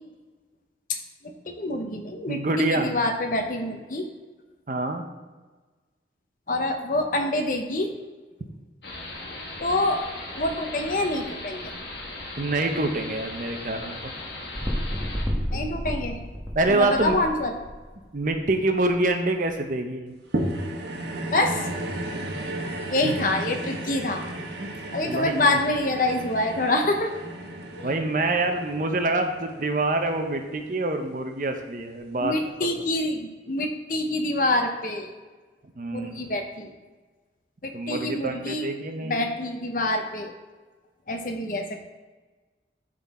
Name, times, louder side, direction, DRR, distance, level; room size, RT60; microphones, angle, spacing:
voice 1, 1.5-4.1 6.5-7.9 9.6-10.0 10.4-11.7 15.5-16.2 16.7-17.5 21.3-21.6 22.9-24.3 24.9-27.1 27.8-27.9 32.2-35.1 35.9-36.7 37.6-38.7 39.0-40.3 41.1-41.8, left 2 dB, 50° left, 4 dB, 0.8 m, -26 dB
voice 2, 2.3-3.0 4.7-5.1 12.4-14.1 15.5-15.6 16.6-17.2 18.1-20.1 23.0-23.2 24.6-25.6 27.8-32.4 35.8-36.3 37.7-39.2, right 2 dB, 45° right, 5 dB, 0.6 m, -26 dB
sound 1, 8.8-15.3, left 2 dB, 70° left, 1.4 m, -38 dB
sound 2, 14.5-18.3 18.9-19.0, equal, 5° right, 1.1 m, -31 dB
sound 3, 20.3-30.8 31.4-31.5, right 1 dB, 80° right, 1.1 m, -34 dB
9.4 x 3.8 x 4.2 m, 1.3 s
head